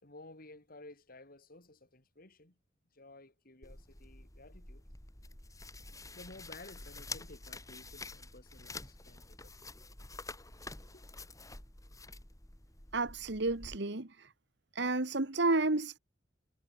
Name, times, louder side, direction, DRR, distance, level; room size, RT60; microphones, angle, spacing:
voice 1, 0.0-2.6 2.9-4.9 6.1-9.5 10.8-11.1, left 2 dB, 50° left, 3.8 m, -54 dB
sound 1, 3.6-13.8, left 3 dB, 20° left, 2.9 m, -48 dB
voice 2, 12.9-14.3 14.7-16.0, right 2 dB, 65° right, 1.7 m, -31 dB
head